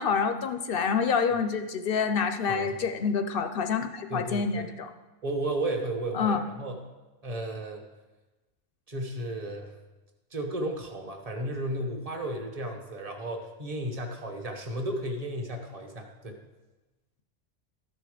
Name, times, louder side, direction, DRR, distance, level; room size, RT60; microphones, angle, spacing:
voice 1, 0.0-4.9 6.1-6.4, left 6 dB, 60° left, 9 dB, 0.6 m, -27 dB
voice 2, 4.1-4.6 5.2-6.8 7.2-7.8 8.9-9.7 10.3-16.4, right 1 dB, 30° right, 3 dB, 1.1 m, -33 dB
12.5 x 5.5 x 4.9 m, 1.1 s
omnidirectional pair, 1.3 m